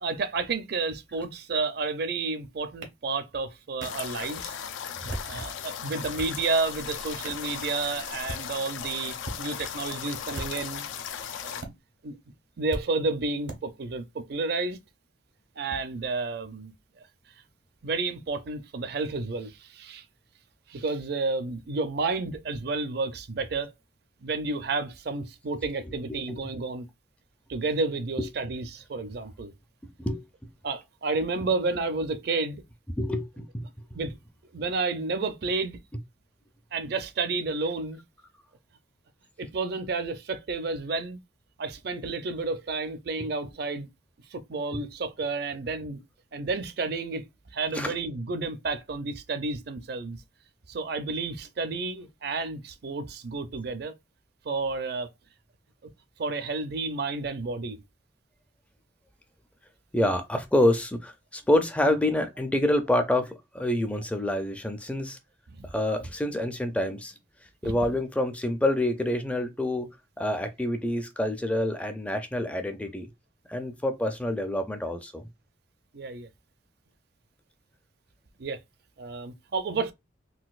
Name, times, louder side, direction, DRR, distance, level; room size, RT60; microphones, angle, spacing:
voice 1, 0.0-4.6 5.2-10.8 11.4-11.7 12.0-12.1 12.6-14.8 15.6-16.7 17.8-20.0 20.7-23.7 24.2-26.9 27.5-29.5 30.6-32.6 33.9-34.1 34.5-35.8 36.7-38.0 39.4-41.2 41.6-43.9 44.3-46.0 46.3-47.3 47.5-50.2 50.7-53.9 54.4-55.1 56.2-57.8 65.5-65.7 67.6-67.7 75.9-76.3 78.4-78.6 79.0-79.9, right 3 dB, 55° right, 0.5 m, -31 dB
sound 1, 2.8-2.9 3.8-3.9 4.9-5.4 5.9-6.4 7.2-7.5 8.1-8.4 9.2-9.4 10.2-10.8 11.6-11.7 12.7-12.8 13.5-13.6, right 1 dB, 80° right, 0.8 m, -37 dB
sound 2, 3.8-11.6, left 8 dB, 85° left, 0.4 m, -37 dB
voice 2, 33.0-33.6 47.7-47.9 59.9-65.2 65.7-67.1 67.6-69.9 70.2-73.1 73.5-75.2, left 1 dB, 5° left, 0.4 m, -27 dB
3.9 x 2.2 x 2.4 m
head